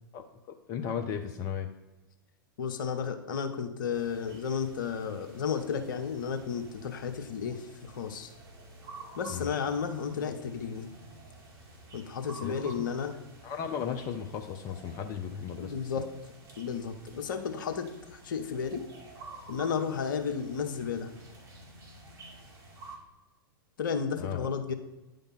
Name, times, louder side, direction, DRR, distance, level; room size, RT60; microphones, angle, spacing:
voice 1, 0.7-1.7 9.3-9.5 12.4-12.7 13.4-15.8 24.2-24.5, left 7 dB, 30° left, 5 dB, 0.6 m, -35 dB
voice 2, 2.6-8.3 9.2-10.9 11.9-13.1 15.6-16.1 16.6-17.9 18.1-18.8 19.5-21.1 23.8-24.7, left 6 dB, 60° left, 5 dB, 1.0 m, -33 dB
sound 1, 3.9-23.0, right 2 dB, 25° right, 2.1 m, -50 dB
9.9 x 3.5 x 5.9 m, 1.1 s
figure-of-eight pair, 100°, 12 cm